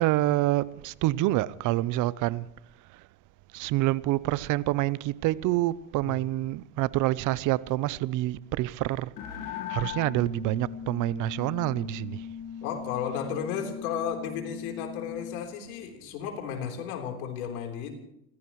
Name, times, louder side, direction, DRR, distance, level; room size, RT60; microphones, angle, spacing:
voice 1, 0.0-2.5 2.9-3.0 3.5-9.1 9.7-12.3, right 16 dB, 45° right, 0.6 m, -27 dB
sound 1, 9.2-15.5, left 9 dB, 50° left, 1.7 m, -39 dB
voice 2, 12.6-18.0, left 8 dB, 85° left, 3.7 m, -34 dB
29.0 x 15.5 x 3.1 m
supercardioid pair, 120°, 42 cm